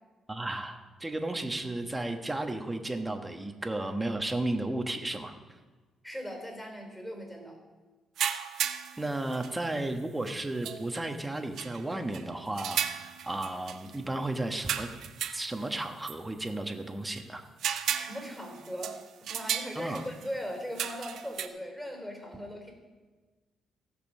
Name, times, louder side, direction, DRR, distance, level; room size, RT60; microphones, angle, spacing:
voice 1, 0.3-5.3 9.0-14.9 15.3-17.4 19.7-20.0, right 2 dB, 15° right, 5 dB, 1.3 m, -34 dB
voice 2, 6.0-7.6 17.9-22.7, equal, 10° left, 2 dB, 4.1 m, -39 dB
sound 1, 8.2-9.5 10.3-10.4 10.6-11.0 11.6-11.8 12.1-12.2 12.6-14.0 14.6-16.2 16.5-16.6 17.1-17.2 17.6-20.3 20.8-21.5, right 9 dB, 75° right, 0.6 m, -35 dB
15.5 x 6.9 x 5.5 m, 1.3 s
cardioid pair, 90°, 0 cm